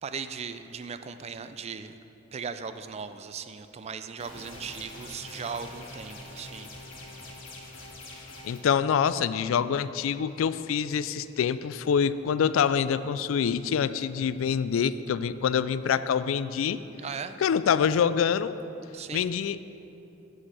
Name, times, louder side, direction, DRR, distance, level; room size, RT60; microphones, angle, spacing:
voice 1, 0.0-2.0 2.3-6.7 7.0-7.3 17.0-17.4 18.9-19.3, right 6 dB, 35° right, 10 dB, 0.4 m, -38 dB
sound 1, 4.2-8.6, left 2 dB, 70° left, 1.7 m, -44 dB
voice 2, 8.4-16.8 17.4-18.6 19.1-19.6, left 7 dB, 90° left, 14 dB, 0.3 m, -26 dB
7.1 x 6.4 x 7.6 m, 3.0 s
head